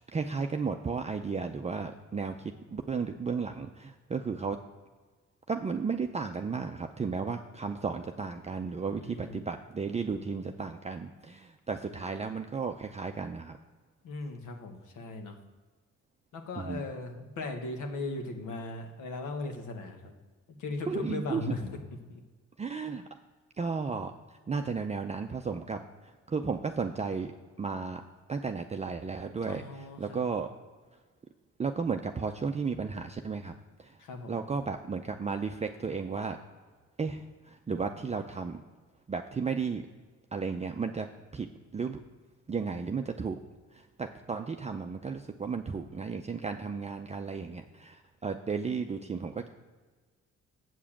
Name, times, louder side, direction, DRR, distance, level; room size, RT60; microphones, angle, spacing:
voice 1, 0.1-4.6 5.5-13.6 16.6-16.8 20.9-21.5 22.6-23.0 23.6-24.1 24.5-27.3 27.6-28.0 28.3-30.5 31.6-33.5 33.8-33.9 34.3-36.4 37.0-38.6 39.1-39.8 40.3-41.1 41.3-41.5 41.7-42.0 42.5-43.4 43.7-49.5, right 5 dB, 20° right, 5 dB, 0.5 m, -34 dB
voice 2, 9.0-9.5 14.0-15.4 16.3-20.1 20.5-21.8 22.1-22.2 29.5-30.2 34.0-34.4, left 3 dB, 85° left, 4 dB, 1.4 m, -38 dB
8.2 x 4.8 x 7.3 m, 1.4 s
cardioid pair, 90°, 30 cm